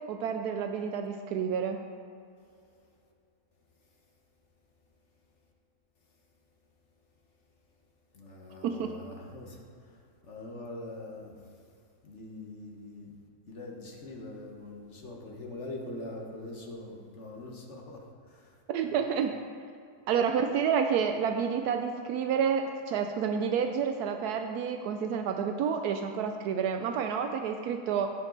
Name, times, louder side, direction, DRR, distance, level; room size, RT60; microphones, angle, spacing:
voice 1, 0.0-1.8 8.6-9.0 18.7-19.4 20.1-28.1, right 7 dB, 80° right, 6 dB, 1.1 m, -29 dB
voice 2, 8.1-10.0 10.2-11.4 12.0-13.1 13.5-18.5 18.8-19.0, left 2 dB, 50° left, 0 dB, 1.4 m, -43 dB
15.5 x 5.4 x 3.9 m, 2.5 s
omnidirectional pair, 1.6 m